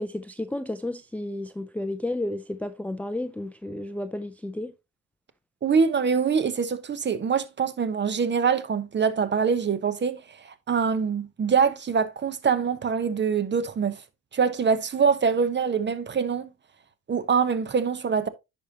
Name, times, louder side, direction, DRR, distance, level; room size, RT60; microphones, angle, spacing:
voice 1, 0.0-4.7, left 1 dB, 5° left, 0.5 m, -32 dB
voice 2, 5.6-14.0 14.3-16.5 17.1-18.3, right 6 dB, 30° right, 1.0 m, -24 dB
10.0 x 5.3 x 2.9 m
hypercardioid pair, 65°, 36 cm